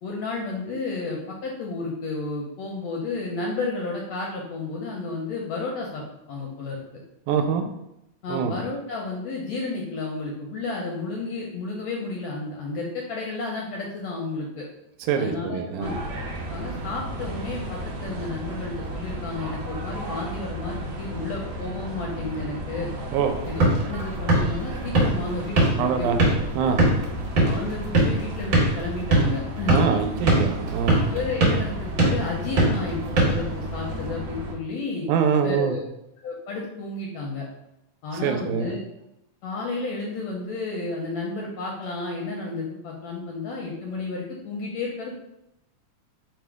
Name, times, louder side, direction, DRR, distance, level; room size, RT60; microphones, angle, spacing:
voice 1, 0.0-6.0 6.3-6.8 8.2-14.7 15.1-15.9 16.5-22.9 23.5-26.2 26.6-26.7 27.4-29.9 31.0-35.1 35.4-35.8 36.2-37.5 38.0-38.8 39.4-45.1, left 3 dB, 75° left, -1 dB, 1.5 m, -32 dB
voice 2, 7.3-7.7 8.3-8.5 15.0-16.0 23.1-23.3 25.8-26.2 26.5-26.8 29.7-31.1 35.1-35.8 38.2-38.7, right 7 dB, 90° right, 6 dB, 2.0 m, -24 dB
sound 1, 15.8-34.5, right 1 dB, 70° right, 1.6 m, -33 dB
sound 2, 23.2-34.1, right 2 dB, 55° right, 1.5 m, -23 dB
4.7 x 2.1 x 4.5 m, 0.84 s
omnidirectional pair, 3.5 m